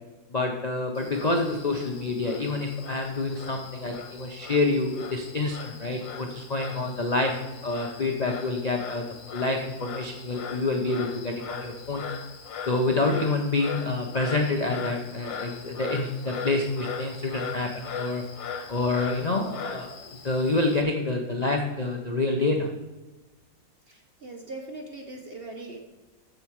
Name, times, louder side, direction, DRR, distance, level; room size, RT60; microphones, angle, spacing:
voice 1, 0.3-7.3 7.6-9.0 9.3-12.0 12.7-18.2 18.7-22.7, left 2 dB, 45° left, 2 dB, 0.5 m, -27 dB
Frog, 1.0-20.8, left 5 dB, 85° left, 1.7 m, -40 dB
voice 2, 23.9-25.8, right 2 dB, 40° right, 3 dB, 0.9 m, -40 dB
9.0 x 6.8 x 4.7 m, 1.1 s
omnidirectional pair, 2.0 m